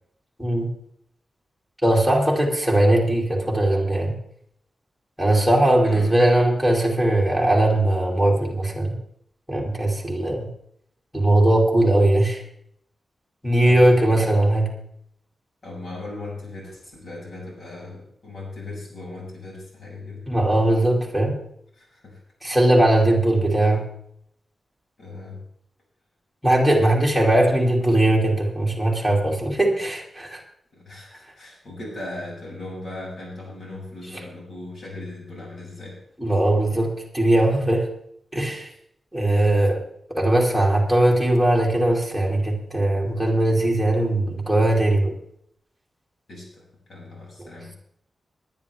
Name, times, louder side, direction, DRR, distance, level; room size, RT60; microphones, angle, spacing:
voice 1, 1.8-4.1 5.2-8.9 9.5-10.5 11.1-12.4 13.4-14.7 20.3-21.4 22.4-23.8 26.4-30.4 34.1-34.2 36.2-37.9 38.3-38.7 39.1-39.8 40.1-45.2 47.4-47.5, right 1 dB, 5° left, -3 dB, 2.8 m, -19 dB
voice 2, 15.6-20.2 21.8-22.2 22.5-22.6 25.0-25.4 30.7-36.0 38.6-38.7 46.3-46.6 46.9-47.7, left 2 dB, 55° left, -3 dB, 7.1 m, -38 dB
19.5 x 11.0 x 3.5 m, 0.70 s
wide cardioid pair, 155°, 0 cm